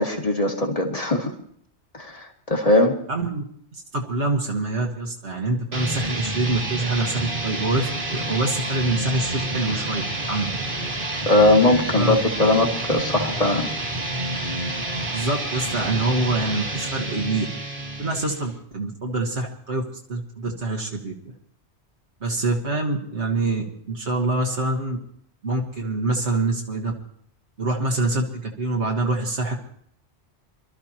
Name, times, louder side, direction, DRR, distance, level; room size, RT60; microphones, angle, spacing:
voice 1, 0.0-1.3 1.9-2.9 11.3-13.7, left 1 dB, 30° left, 1 dB, 2.2 m, -20 dB
voice 2, 3.1-3.4 3.7-10.5 11.9-12.1 15.1-17.5 18.0-19.8 20.1-21.1 22.2-25.0 25.4-26.9 27.6-29.5, right 2 dB, 75° right, -1 dB, 1.9 m, -25 dB
sound 1, 5.7-18.6, right 1 dB, 50° right, 2.1 m, -29 dB
26.0 x 13.0 x 2.9 m, 0.63 s
omnidirectional pair, 1.2 m